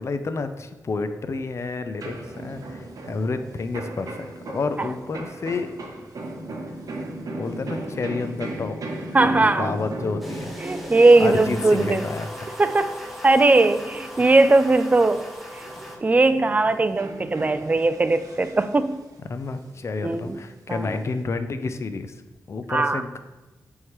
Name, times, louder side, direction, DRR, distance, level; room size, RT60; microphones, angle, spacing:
voice 1, 0.0-4.3 4.5-5.7 7.3-8.8 9.2-10.5 11.2-12.3 19.3-22.2 22.5-23.2, left 3 dB, 45° left, 9 dB, 0.5 m, -29 dB
sound 1, 2.0-15.1 15.5-19.1 19.5-21.2, right 2 dB, 65° right, 0.9 m, -37 dB
voice 2, 9.1-9.7 10.6-12.1 12.6-15.3 15.5-15.6 16.0-19.0 20.0-20.4 20.7-20.9 22.7-23.0, right 2 dB, 25° right, 11 dB, 0.3 m, -19 dB
sound 2, 10.2-16.0, equal, ahead, 0.9 m, -38 dB
9.2 x 3.6 x 3.1 m, 1.1 s
wide cardioid pair, 115°, 7 cm